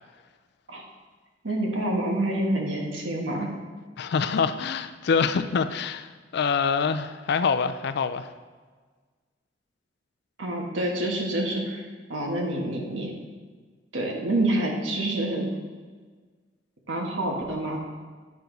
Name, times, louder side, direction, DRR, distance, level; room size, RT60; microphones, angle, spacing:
voice 1, 1.4-3.5 10.4-11.8 12.1-13.1 13.9-15.5 16.9-17.8, right 1 dB, 85° right, 0 dB, 1.4 m, -27 dB
voice 2, 4.0-8.3, left 5 dB, 60° left, 11 dB, 0.4 m, -25 dB
9.4 x 4.8 x 3.9 m, 1.4 s
head